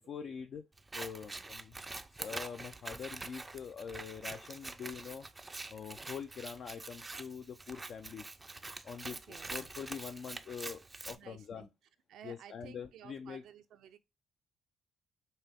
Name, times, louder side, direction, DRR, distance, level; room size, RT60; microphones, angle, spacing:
voice 1, 0.1-0.6 0.9-1.8 2.1-5.3 5.7-8.4 8.8-9.2 9.5-10.8 11.1-11.7 12.2-13.4, left 7 dB, 60° left, 0.4 m, -44 dB
Scissors, 0.8-11.2, right 3 dB, 20° right, 0.4 m, -45 dB
voice 2, 9.1-9.7 11.1-11.7 12.1-14.0, right 10 dB, 80° right, 0.5 m, -55 dB
5.3 x 2.0 x 3.4 m
cardioid pair, 90°, 0 cm